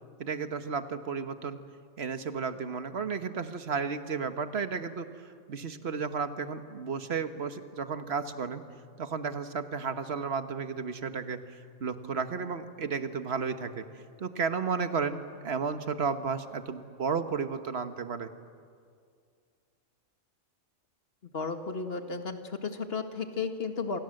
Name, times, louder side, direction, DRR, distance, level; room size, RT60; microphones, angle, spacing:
voice 1, 0.2-1.6 2.0-8.6 9.0-11.4 11.8-13.8 14.2-18.3, right 5 dB, 55° right, 9 dB, 1.5 m, -33 dB
voice 2, 21.3-24.0, left 4 dB, 50° left, 6 dB, 2.1 m, -34 dB
28.0 x 26.5 x 7.8 m, 2.2 s
omnidirectional pair, 1.3 m